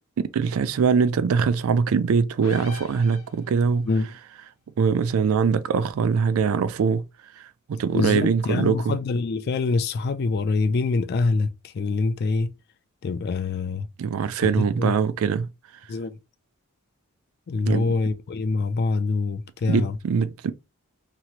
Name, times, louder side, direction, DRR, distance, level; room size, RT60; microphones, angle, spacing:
voice 1, 0.2-3.9 4.8-7.1 7.4-8.9 14.0-15.5 17.7-17.9 19.7-20.5, right 6 dB, 70° right, 0.3 m, -22 dB
sound 1, 2.4-3.8, left 4 dB, 65° left, 0.8 m, -42 dB
voice 2, 7.9-12.5 13.0-13.9 14.4-14.9 15.9-16.2 17.5-20.0, left 3 dB, 45° left, 0.3 m, -25 dB
2.9 x 2.9 x 2.4 m
head